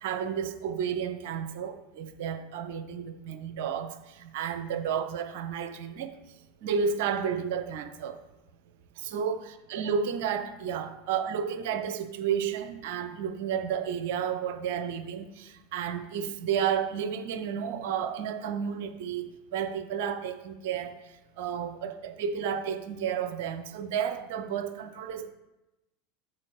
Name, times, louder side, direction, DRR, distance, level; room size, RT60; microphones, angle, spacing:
voice 1, 0.0-6.1 6.6-8.2 9.0-21.0 21.4-25.3, right 7 dB, 60° right, 10 dB, 0.7 m, -32 dB
12.5 x 4.4 x 3.3 m, 0.98 s
hypercardioid pair, 85°, 0 cm